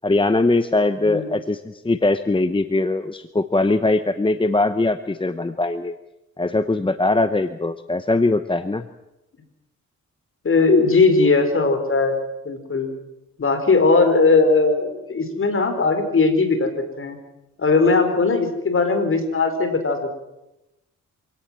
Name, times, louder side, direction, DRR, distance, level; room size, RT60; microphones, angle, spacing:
voice 1, 0.0-6.0 6.4-8.8, left 2 dB, 15° left, 11 dB, 1.0 m, -21 dB
voice 2, 10.4-12.1 12.4-12.9 13.4-17.2 17.6-20.2, left 3 dB, 45° left, 8 dB, 4.7 m, -19 dB
26.0 x 17.5 x 7.5 m, 0.93 s
cardioid pair, 85°, 30 cm